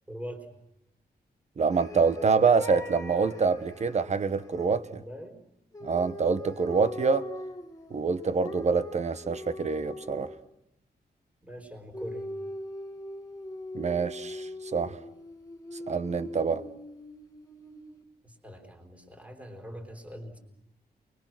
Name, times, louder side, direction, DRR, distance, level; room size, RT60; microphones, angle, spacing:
voice 1, 0.1-0.5 4.9-5.4 11.4-12.3 18.2-20.4, equal, 10° right, 3 dB, 4.4 m, -42 dB
voice 2, 1.6-5.0 5.8-7.3 7.9-10.3 13.7-15.0 15.9-16.6, right 5 dB, 45° right, 12 dB, 1.3 m, -26 dB
sound 1, 1.7-4.7 5.7-10.5 11.9-18.0, left 1 dB, 20° left, 2.2 m, -42 dB
29.0 x 22.5 x 6.1 m, 0.82 s
wide cardioid pair, 140°, 17 cm